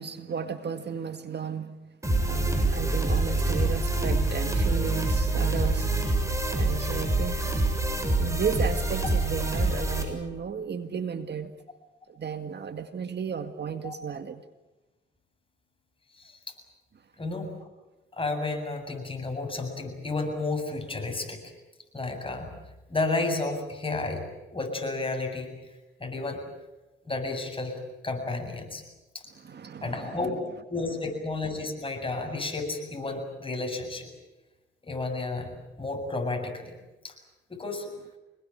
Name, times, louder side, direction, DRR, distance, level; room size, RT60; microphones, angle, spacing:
voice 1, 0.0-1.8 2.3-5.9 6.5-7.5 8.2-11.5 12.1-14.4 29.4-30.2, right 6 dB, 55° right, 2.0 m, -34 dB
sound 1, 2.0-10.0, right 2 dB, 15° right, 7.3 m, -26 dB
voice 2, 6.5-7.0 13.8-13.9 16.1-16.5 17.2-17.7 18.1-21.4 21.9-22.5 22.9-24.2 24.5-25.5 26.0-26.4 27.0-28.8 29.1-29.3 29.8-30.4 30.7-34.1 34.8-35.5 35.8-36.8 37.0-37.2 37.5-37.9, left 3 dB, 25° left, 7.6 m, -32 dB
26.0 x 21.0 x 9.0 m
cardioid pair, 65°, 20 cm